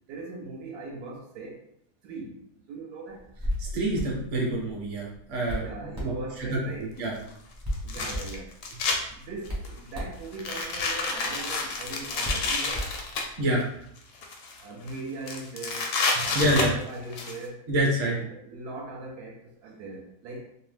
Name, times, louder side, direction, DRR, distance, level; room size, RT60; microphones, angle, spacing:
voice 1, 0.1-1.6 2.0-2.4 2.7-3.2 5.6-6.9 7.8-8.5 9.1-12.9 14.6-15.9 16.2-17.7 18.0-20.4, right 3 dB, 75° right, -1 dB, 1.1 m, -40 dB
Hands, 3.2-13.4, equal, 20° right, 0.4 m, -37 dB
voice 2, 3.6-5.7 6.0-6.1 6.4-6.6 7.0-7.1 13.4-13.6 16.3-16.7 17.7-18.2, right 1 dB, 50° right, -2 dB, 0.9 m, -26 dB
sound 1, 6.4-6.5 7.7-9.0 9.5-9.8 10.3-13.2 14.0-14.6 14.9-15.0 15.3-17.3, left 3 dB, 70° left, 0.8 m, -29 dB
2.8 x 2.0 x 3.1 m, 0.72 s
omnidirectional pair, 1.7 m